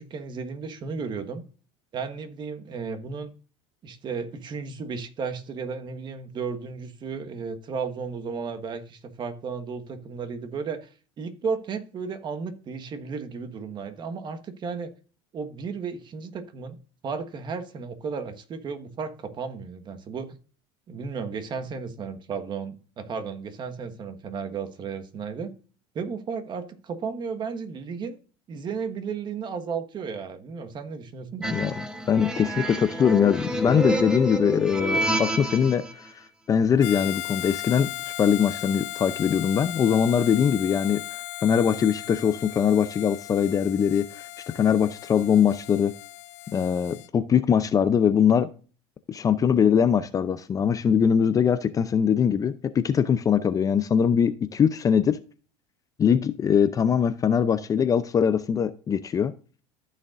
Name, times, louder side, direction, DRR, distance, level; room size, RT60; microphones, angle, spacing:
voice 1, 0.0-1.4 1.9-3.3 3.8-10.9 11.2-14.9 15.3-16.8 17.0-20.4 20.9-25.5 25.9-28.2 28.5-31.6, right 5 dB, 35° right, 1.4 m, -34 dB
sound 1, 31.4-35.9, right 1 dB, 5° right, 1.0 m, -28 dB
voice 2, 32.1-41.0 41.4-44.2 44.5-45.9 46.5-48.5 49.1-55.2 56.0-59.3, left 7 dB, 25° left, 0.5 m, -22 dB
Harmonica, 36.8-47.1, left 18 dB, 70° left, 0.7 m, -37 dB
14.5 x 6.5 x 2.5 m
supercardioid pair, 125°, 14 cm